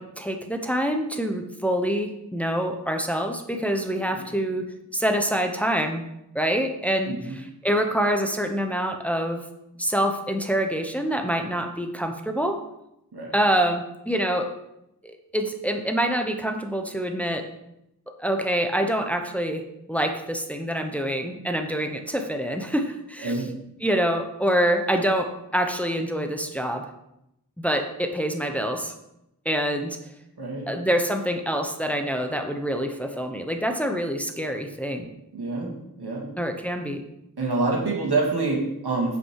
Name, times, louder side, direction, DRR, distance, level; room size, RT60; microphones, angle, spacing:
voice 1, 0.0-6.0 6.3-9.4 9.8-12.6 13.3-14.5 15.0-17.4 18.2-19.6 19.9-23.5 23.8-26.9 27.6-28.9 29.4-30.0 30.7-35.1 36.4-37.0, equal, 5° left, 5 dB, 1.0 m, -26 dB
voice 2, 7.1-7.4 13.1-13.3 23.2-23.5 30.4-30.7 35.3-36.3 37.4-39.2, right 3 dB, 85° right, -1 dB, 2.3 m, -27 dB
8.7 x 5.8 x 4.8 m, 0.84 s
cardioid pair, 45°, 38 cm